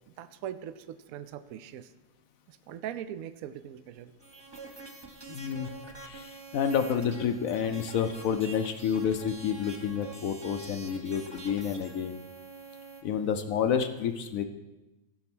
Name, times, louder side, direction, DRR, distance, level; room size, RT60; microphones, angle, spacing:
voice 1, 0.2-1.9 2.5-4.1, right 10 dB, 75° right, 11 dB, 0.7 m, -41 dB
sound 1, 4.2-13.0, right 3 dB, 20° right, 0.7 m, -46 dB
voice 2, 5.3-5.7 6.0-12.2 13.0-14.4, left 7 dB, 70° left, 8 dB, 0.8 m, -29 dB
15.0 x 5.6 x 6.0 m, 1.0 s
omnidirectional pair, 2.0 m